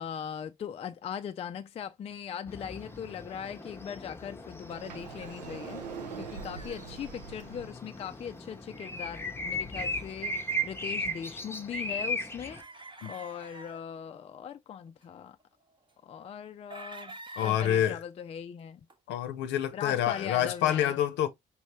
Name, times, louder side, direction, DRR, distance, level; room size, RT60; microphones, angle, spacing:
voice 1, 0.0-5.8 6.2-15.4 16.0-17.1 17.4-18.8 19.7-20.9, left 8 dB, 30° left, 0.4 m, -40 dB
sound 1, 2.5-12.6, equal, 10° left, 0.8 m, -37 dB
Sliding door, 4.7-7.7, right 6 dB, 80° right, 0.5 m, -43 dB
sound 2, 6.5-6.8 7.3-7.9 9.3-10.5 10.8-11.7 12.4-13.8 14.9-15.4 16.7-18.0 18.9-19.0 20.0-20.6, right 2 dB, 25° right, 1.0 m, -47 dB
voice 2, 17.4-18.0 19.1-21.3, left 11 dB, 60° left, 0.7 m, -27 dB
5.2 x 2.7 x 3.0 m
figure-of-eight pair, 40°, 21 cm